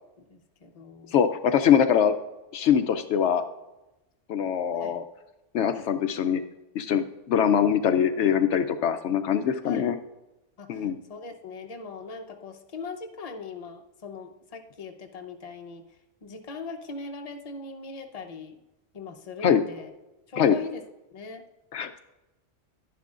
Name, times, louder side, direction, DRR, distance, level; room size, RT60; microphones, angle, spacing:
voice 1, 0.2-1.2 4.8-4.9 9.6-9.9 10.6-15.8 16.2-18.5 18.9-19.9 20.3-20.8 21.1-21.4, left 4 dB, 35° left, 3 dB, 0.8 m, -40 dB
voice 2, 1.1-2.1 2.5-3.4 4.3-5.0 5.5-6.4 6.7-10.0 10.7-11.0 19.4-19.6 20.4-20.5 21.7-22.0, left 8 dB, 75° left, 8 dB, 0.9 m, -23 dB
11.5 x 10.5 x 2.5 m, 0.99 s
omnidirectional pair, 1.2 m